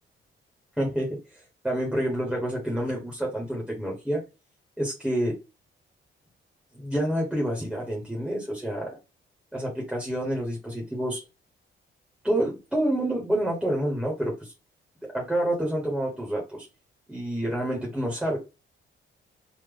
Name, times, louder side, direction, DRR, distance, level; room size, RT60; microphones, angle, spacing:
voice 1, 0.8-4.2 4.8-5.4 6.7-9.0 9.5-11.2 12.2-14.5 15.1-16.7 17.1-18.4, right 1 dB, 5° right, -2 dB, 0.9 m, -28 dB
3.4 x 2.0 x 3.5 m, 0.27 s
wide cardioid pair, 180°, 21 cm